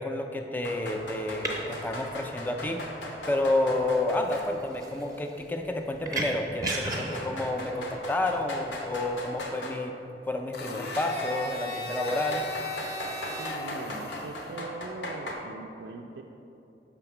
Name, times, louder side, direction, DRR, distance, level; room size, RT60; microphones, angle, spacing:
voice 1, 0.0-2.8 3.3-10.0 10.3-12.4, left 2 dB, 10° left, 4 dB, 0.3 m, -30 dB
sound 1, 0.6-4.5 4.8-4.9 5.7-5.8 6.7-9.8 10.9-11.3 12.1-15.3, left 1 dB, 85° left, 0.9 m, -38 dB
sound 2, 0.9-9.4, right 2 dB, 20° right, 0.7 m, -37 dB
Domestic sounds home sounds, 10.5-14.6, left 1 dB, 60° left, 0.7 m, -36 dB
voice 2, 13.1-16.2, right 3 dB, 70° right, 1 dB, 0.3 m, -41 dB
5.7 x 3.5 x 5.9 m, 2.9 s
head